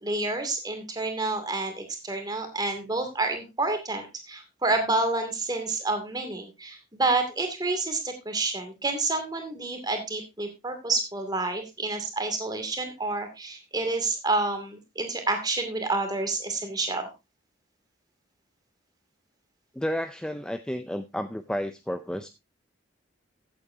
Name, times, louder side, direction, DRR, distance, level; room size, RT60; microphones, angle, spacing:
voice 1, 0.0-17.1, right 3 dB, 20° right, 6 dB, 2.5 m, -29 dB
voice 2, 19.7-22.3, equal, 5° left, 9 dB, 0.5 m, -31 dB
15.0 x 8.6 x 2.7 m, 0.23 s
head